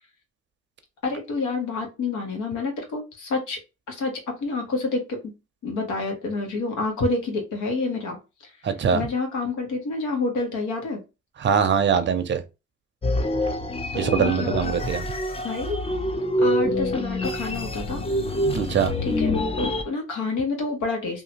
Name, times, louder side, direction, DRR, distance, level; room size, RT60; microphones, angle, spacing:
voice 1, 1.0-3.6 3.9-5.3 5.6-8.2 8.4-8.5 8.9-11.0 13.9-15.2 15.4-15.8 16.4-18.0 19.0-21.2, left 3 dB, 80° left, 1.2 m, -28 dB
voice 2, 8.6-9.1 11.4-12.4 13.9-15.0 18.5-19.0, right 7 dB, 40° right, 0.6 m, -22 dB
sound 1, 13.0-19.8, left 1 dB, 20° left, 0.5 m, -26 dB
2.8 x 2.4 x 2.8 m
cardioid pair, 90°, 30 cm